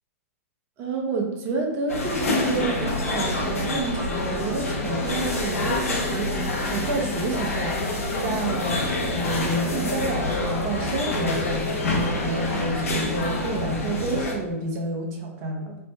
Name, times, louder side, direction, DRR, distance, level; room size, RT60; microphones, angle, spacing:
voice 1, 0.8-15.8, right 2 dB, 35° right, 1 dB, 0.6 m, -29 dB
sound 1, 1.9-14.3, left 2 dB, 75° left, 0.7 m, -27 dB
3.2 x 2.0 x 2.7 m, 0.98 s
hypercardioid pair, 110°, 8 cm